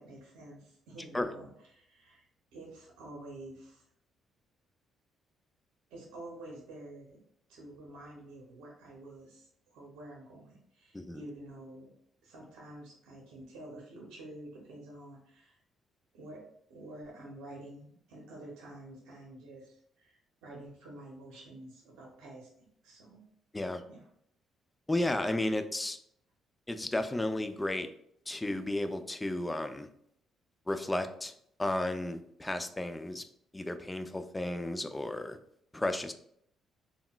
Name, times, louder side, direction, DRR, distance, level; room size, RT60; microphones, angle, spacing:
voice 1, 0.0-2.3 2.5-3.8 5.9-7.2 7.5-11.9 12.2-15.6 16.1-16.4 16.7-23.2 23.9-24.1, right 1 dB, 90° right, -2 dB, 0.7 m, -49 dB
voice 2, 24.9-26.0 26.7-27.9 28.3-29.9 30.7-31.3 31.6-33.2 33.5-35.4 35.7-36.1, left 1 dB, 15° left, 8 dB, 0.3 m, -33 dB
3.7 x 2.1 x 2.2 m, 0.68 s
cardioid pair, 75°, 0 cm